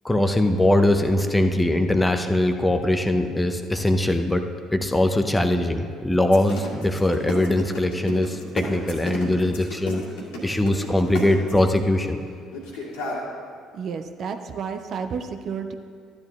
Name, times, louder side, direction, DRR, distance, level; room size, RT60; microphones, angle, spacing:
voice 1, 0.0-4.5 4.7-10.0 10.4-12.2, left 1 dB, 10° left, 6 dB, 0.7 m, -21 dB
sound 1, 6.2-11.7 12.5-13.2, left 2 dB, 65° left, 1.9 m, -32 dB
voice 2, 13.7-15.7, right 6 dB, 45° right, 6 dB, 0.5 m, -31 dB
13.5 x 10.5 x 2.3 m, 2.1 s
figure-of-eight pair, 50°, 0 cm